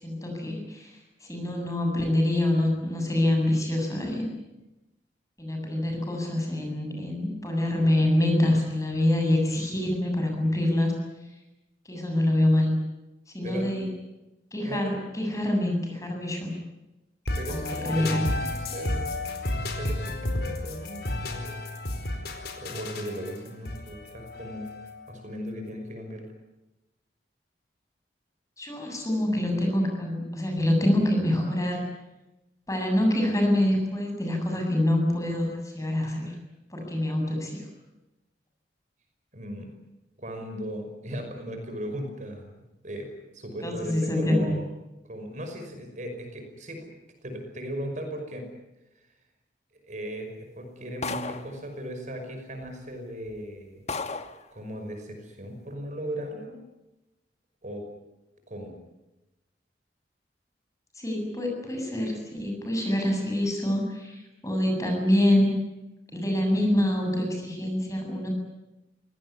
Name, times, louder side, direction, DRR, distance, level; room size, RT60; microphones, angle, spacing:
voice 1, 0.0-4.3 5.4-10.9 11.8-12.7 13.3-13.9 14.5-16.5 17.5-18.3 28.6-31.8 32.7-36.3 36.7-37.7 43.6-44.5 61.0-65.5 66.1-68.3, left 1 dB, 20° left, 2 dB, 7.9 m, -26 dB
sound 1, 17.3-25.1, left 1 dB, 65° left, 4.5 m, -32 dB
voice 2, 17.4-19.3 19.8-21.6 22.6-24.8 25.1-26.3 39.3-39.7 40.2-42.6 42.8-44.7 45.1-46.9 47.2-48.5 49.7-53.9 54.5-56.6 57.6-57.8 58.5-58.7, equal, 45° right, 5 dB, 5.7 m, -37 dB
sound 2, 51.0-51.6 52.6-52.7 53.3-53.4 53.9-54.4, left 4 dB, 40° left, 1.3 m, -33 dB
25.5 x 18.5 x 9.8 m, 0.99 s
head